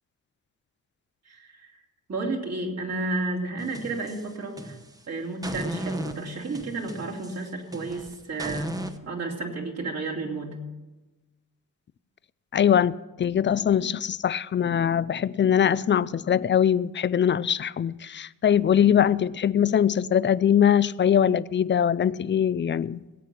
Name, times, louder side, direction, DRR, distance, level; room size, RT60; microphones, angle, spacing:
voice 1, 1.3-1.7 2.1-4.8 5.1-8.8 9.0-10.6, right 2 dB, 50° right, 2.7 m, -32 dB
sound 1, 3.6-5.0 5.4-9.0, right 1 dB, 10° right, 0.9 m, -36 dB
voice 2, 12.5-23.0, left 9 dB, 35° left, 0.4 m, -22 dB
18.0 x 8.4 x 6.0 m
cardioid pair, 90°, 34 cm